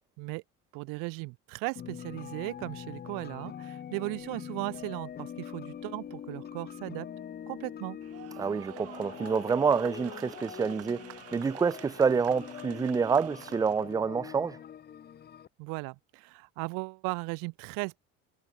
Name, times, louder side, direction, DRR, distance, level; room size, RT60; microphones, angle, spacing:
voice 1, 0.7-7.1 7.5-8.0 15.6-18.0, right 29 dB, 80° right, 1.4 m, -37 dB
sound 1, 1.8-15.5, left 9 dB, 30° left, 3.9 m, -43 dB
sound 2, 8.0-13.9, right 14 dB, 45° right, 3.6 m, -49 dB
voice 2, 8.4-14.6, right 5 dB, 10° right, 0.5 m, -28 dB
cardioid pair, 175°, 32 cm